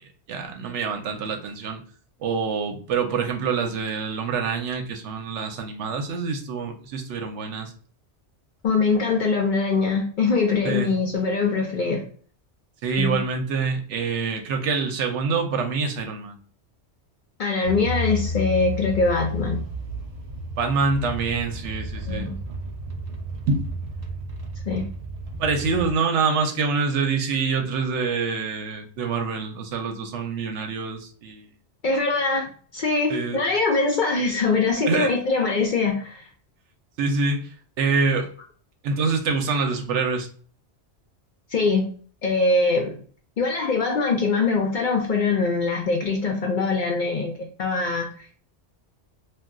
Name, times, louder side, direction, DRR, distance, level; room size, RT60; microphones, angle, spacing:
voice 1, 0.0-1.8 2.2-7.7 10.6-10.9 12.8-16.4 20.6-22.3 23.5-23.7 25.4-31.5 33.1-33.4 34.9-35.1 37.0-37.5 37.8-38.3 38.8-40.3, right 4 dB, 75° right, 5 dB, 0.9 m, -26 dB
voice 2, 8.6-12.1 13.0-13.2 17.4-19.6 22.1-22.4 24.7-24.9 31.8-36.2 41.5-41.9 42.2-43.0 43.4-47.3 47.6-48.1, left 3 dB, 55° left, 1 dB, 0.6 m, -23 dB
sound 1, 17.6-25.9, left 1 dB, 55° right, 0.4 m, -32 dB
2.3 x 2.2 x 3.6 m, 0.43 s
omnidirectional pair, 1.2 m